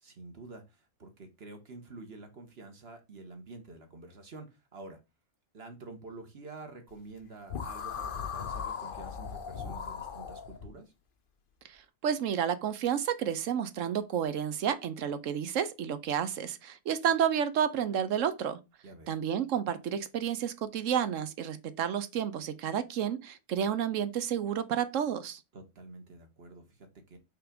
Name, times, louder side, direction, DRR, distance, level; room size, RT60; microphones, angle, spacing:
voice 1, 0.0-5.0 5.5-10.9 18.8-19.1 25.5-27.2, right 3 dB, 45° right, 1.5 m, -48 dB
sound 1, 7.5-10.7, left 7 dB, 45° left, 0.8 m, -38 dB
voice 2, 11.6-18.6 19.1-25.4, right 8 dB, 65° right, 1.0 m, -31 dB
5.7 x 3.6 x 5.1 m
omnidirectional pair, 1.5 m